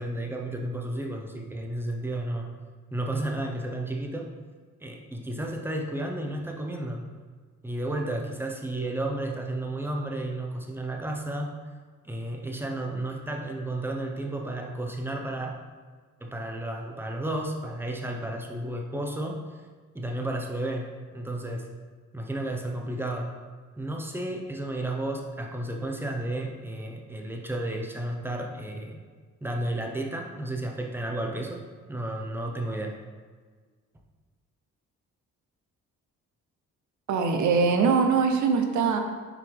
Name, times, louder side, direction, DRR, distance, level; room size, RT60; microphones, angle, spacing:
voice 1, 0.0-2.5 2.9-4.3 4.8-7.0 7.6-11.5 12.0-15.6 16.2-19.4 19.9-21.6 22.1-23.3 23.8-29.0 29.4-31.6 31.9-33.0, right 1 dB, 5° right, 1 dB, 0.8 m, -32 dB
voice 2, 37.1-39.0, right 5 dB, 70° right, 5 dB, 0.8 m, -22 dB
6.0 x 4.5 x 3.5 m, 1.5 s
cardioid pair, 90°, 30 cm